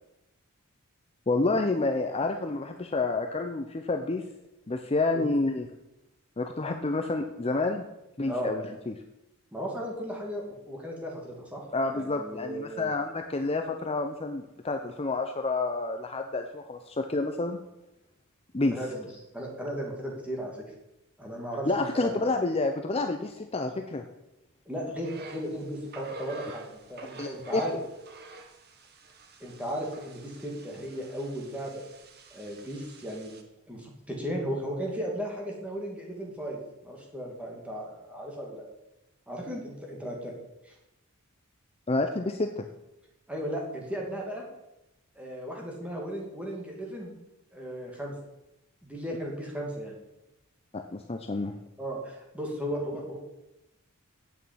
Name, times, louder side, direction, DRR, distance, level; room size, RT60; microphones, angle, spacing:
voice 1, 1.3-4.2 4.7-5.7 6.4-7.8 8.2-8.9 11.7-17.6 18.5-18.8 21.7-24.0 27.2-27.6 41.9-42.7 50.7-51.5, left 3 dB, 25° left, 5 dB, 0.6 m, -29 dB
voice 2, 9.5-11.6 11.9-12.9 18.7-19.1 19.3-20.6 21.2-22.3 24.7-27.8 29.4-31.8 32.3-33.3 33.7-38.6 39.3-40.3 40.6-40.8 43.3-44.4 45.2-47.1 47.5-48.1 48.8-50.0 51.8-53.2, equal, 5° right, -2 dB, 2.5 m, -35 dB
sound 1, 25.0-33.4, right 4 dB, 45° right, 1.4 m, -48 dB
8.6 x 7.2 x 8.8 m, 0.93 s
head